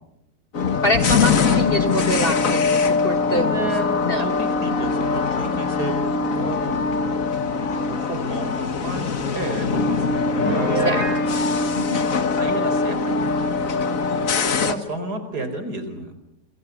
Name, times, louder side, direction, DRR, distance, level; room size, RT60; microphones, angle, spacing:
sound 1, 0.5-14.7, left 4 dB, 50° left, 1.8 m, -22 dB
voice 1, 0.6-3.7 4.0-4.3 10.7-11.1 11.7-12.1, left 2 dB, 35° left, 8 dB, 1.6 m, -25 dB
voice 2, 3.3-3.9 4.2-5.9 6.3-6.8 7.9-10.2 10.8-11.2 12.4-13.0 14.5-16.1, right 2 dB, 65° right, 9 dB, 4.9 m, -31 dB
Piano, 10.4-11.2, right 3 dB, 75° left, 8.8 m, -24 dB
29.0 x 27.0 x 7.3 m, 0.85 s
omnidirectional pair, 1.9 m